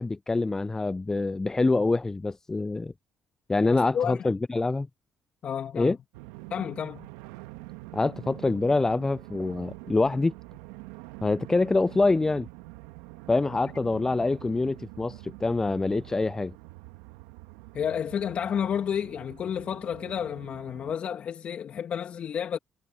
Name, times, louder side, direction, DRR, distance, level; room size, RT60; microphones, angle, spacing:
voice 1, 0.0-2.9 3.5-4.9 5.7-6.0 7.9-10.3 11.2-12.5 13.3-16.5, left 3 dB, 20° left, 0.5 m, -25 dB
voice 2, 3.7-4.3 5.4-5.9 6.5-7.1 17.7-22.6, left 8 dB, 55° left, 2.6 m, -31 dB
sound 1, 6.1-21.0, right 21 dB, 80° right, 1.6 m, -45 dB
hypercardioid pair, 55°, 3 cm